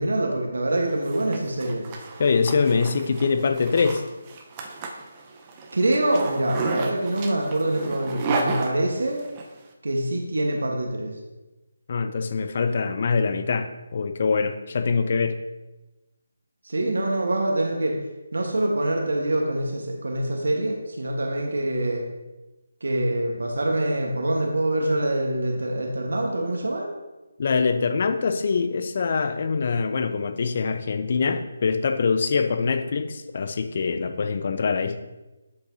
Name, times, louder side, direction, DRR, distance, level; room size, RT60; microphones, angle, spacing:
voice 1, 0.0-1.8 5.7-9.2 9.8-11.1 16.6-18.0 18.3-22.1 22.8-26.9, right 1 dB, 70° right, 0 dB, 1.3 m, -25 dB
Zipper (clothing), 0.8-9.5, right 3 dB, 25° right, 0.9 m, -32 dB
voice 2, 2.2-4.0 11.9-15.4 27.4-35.0, left 5 dB, 45° left, 9 dB, 0.6 m, -24 dB
11.5 x 5.5 x 2.8 m, 1.1 s
figure-of-eight pair, 150°, 0 cm